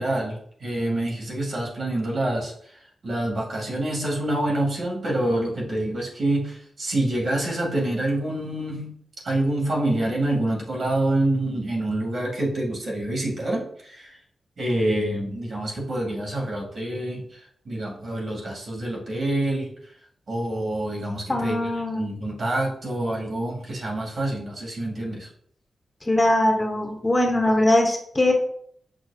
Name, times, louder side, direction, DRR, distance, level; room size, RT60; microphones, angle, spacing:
voice 1, 0.0-2.5 3.0-8.9 9.2-14.2 14.6-19.7 20.3-25.3, right 1 dB, 55° right, -2 dB, 2.2 m, -27 dB
voice 2, 21.3-22.0 26.1-28.3, left 1 dB, 20° left, 2 dB, 1.0 m, -21 dB
6.3 x 6.1 x 2.4 m, 0.64 s
wide cardioid pair, 120°, 0 cm